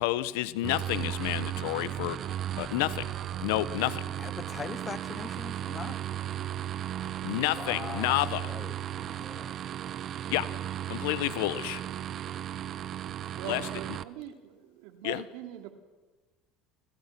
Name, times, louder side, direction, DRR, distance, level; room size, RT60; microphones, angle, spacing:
voice 1, 0.0-2.2 2.6-3.1 3.4-4.0 7.2-8.5 10.3-10.5 10.9-11.8 13.4-13.7 15.0-15.2, left 17 dB, 85° left, 1.1 m, -30 dB
sound 1, 0.6-14.0, right 11 dB, 45° right, 0.9 m, -35 dB
voice 2, 4.2-6.0 7.5-9.6, left 6 dB, 30° left, 1.4 m, -42 dB
voice 3, 13.3-15.7, right 12 dB, 75° right, 3.0 m, -42 dB
29.0 x 25.5 x 6.1 m
supercardioid pair, 105°, 0 cm